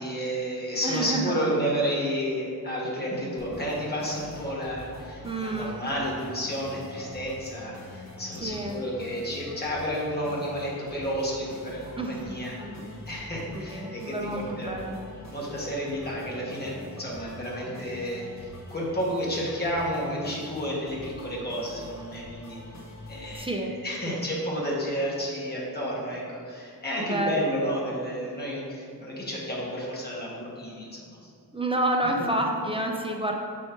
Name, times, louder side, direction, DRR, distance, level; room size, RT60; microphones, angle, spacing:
voice 1, 0.0-12.6 13.1-14.8 15.3-22.6 23.1-31.3, equal, 25° left, -5 dB, 1.6 m, -31 dB
voice 2, 0.8-1.4 5.2-5.8 8.4-8.8 12.0-12.9 13.5-14.9 23.3-23.7 24.1-24.2 27.0-27.4 31.5-33.4, right 2 dB, 15° right, 1 dB, 0.6 m, -29 dB
sound 1, 3.4-23.4, left 1 dB, 45° left, 1.3 m, -44 dB
7.3 x 4.4 x 4.4 m, 2.4 s
wide cardioid pair, 140°, 38 cm